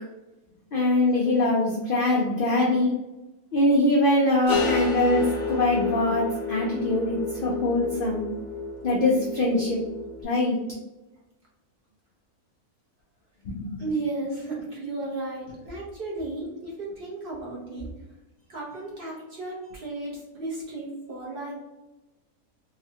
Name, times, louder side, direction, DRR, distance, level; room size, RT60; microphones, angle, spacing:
voice 1, 0.7-2.9 3.5-8.2 8.8-9.8 10.2-10.6 13.5-13.8, left 2 dB, 90° left, -2 dB, 0.4 m, -23 dB
sound 1, 4.5-10.2, left 3 dB, 60° left, 0.9 m, -31 dB
voice 2, 13.8-17.9 18.5-21.6, right 2 dB, 55° right, -4 dB, 0.7 m, -34 dB
2.9 x 2.1 x 2.7 m, 1.0 s
omnidirectional pair, 1.5 m